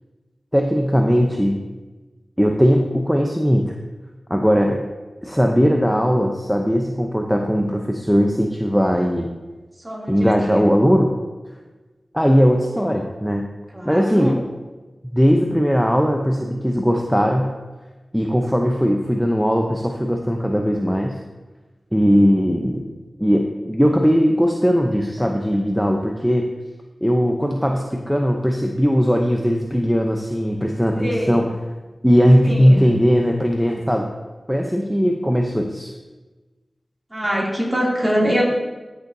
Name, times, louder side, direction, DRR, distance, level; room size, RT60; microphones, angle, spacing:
voice 1, 0.5-1.6 2.4-3.7 4.3-4.8 5.2-9.3 10.1-11.1 12.1-13.4 13.8-14.4 15.0-17.5 18.1-21.2 21.9-22.8 23.2-26.4 27.0-31.5 32.0-34.1 34.5-35.9, equal, ahead, 1 dB, 0.7 m, -18 dB
voice 2, 9.8-10.7 13.7-14.4 30.9-31.5 32.4-32.8 37.1-38.4, equal, 20° right, -4 dB, 2.8 m, -23 dB
13.0 x 6.6 x 2.8 m, 1.2 s
wide cardioid pair, 60°, 0 cm